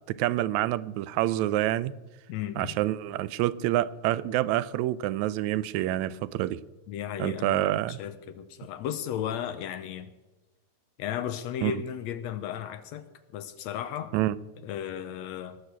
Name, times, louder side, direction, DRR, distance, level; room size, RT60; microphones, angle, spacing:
voice 1, 0.1-1.9 2.6-6.6 7.2-8.0 11.6-11.8 14.1-14.4, right 14 dB, 80° right, 1.8 m, -27 dB
voice 2, 2.3-2.8 6.9-10.1 11.0-13.1 13.3-14.1 14.6-15.6, left 10 dB, 75° left, 1.8 m, -35 dB
18.5 x 6.6 x 8.1 m
omnidirectional pair, 3.4 m